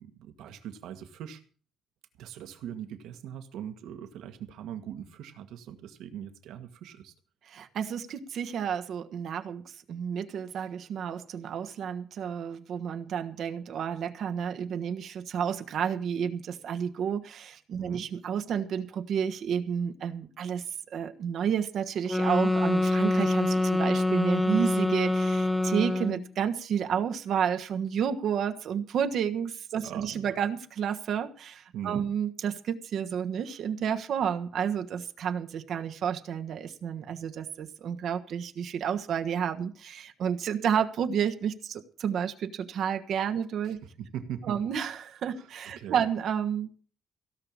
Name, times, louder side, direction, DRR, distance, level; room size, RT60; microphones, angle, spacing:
voice 1, 0.0-1.4 2.2-7.1 17.8-18.1 29.8-30.4 31.7-32.0 43.6-44.6 45.3-45.5 45.8-46.0, right 9 dB, 90° right, 7 dB, 2.0 m, -41 dB
voice 2, 7.5-43.8 44.5-46.7, right 8 dB, 70° right, 7 dB, 1.4 m, -31 dB
sound 1, 22.1-26.3, left 2 dB, 5° left, 1.0 m, -25 dB
17.0 x 5.8 x 8.7 m, 0.40 s
cardioid pair, 90°, 0 cm